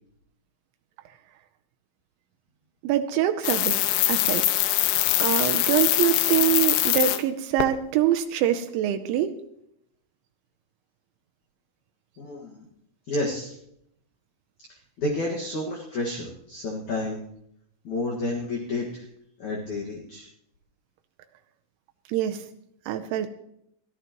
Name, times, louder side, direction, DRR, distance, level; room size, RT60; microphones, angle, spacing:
voice 1, 2.8-3.8 4.1-4.5 5.2-9.4 22.1-22.5 22.9-23.3, right 11 dB, 85° right, 7 dB, 3.1 m, -24 dB
sound 1, 3.4-7.2 7.6-7.7, left 14 dB, 80° left, 2.6 m, -23 dB
voice 2, 12.2-12.7 13.1-13.5 15.0-17.2 17.8-19.0 19.4-20.3, left 2 dB, 50° left, -3 dB, 2.6 m, -30 dB
23.0 x 14.5 x 3.0 m, 0.74 s
omnidirectional pair, 5.2 m